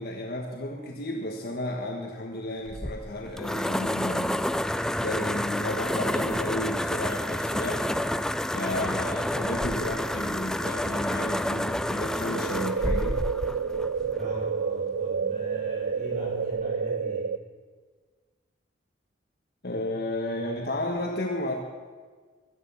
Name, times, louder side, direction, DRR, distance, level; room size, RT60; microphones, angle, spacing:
voice 1, 0.0-4.4 5.0-7.8 8.5-13.2 19.6-21.5, left 1 dB, 55° left, 1 dB, 1.5 m, -33 dB
sound 1, 2.7-14.5, left 1 dB, 5° left, 0.4 m, -29 dB
sound 2, 12.3-17.4, right 5 dB, 75° right, 0.4 m, -29 dB
voice 2, 14.2-17.3, equal, 40° right, -6 dB, 5.0 m, -41 dB
19.0 x 12.5 x 5.7 m, 1.5 s
head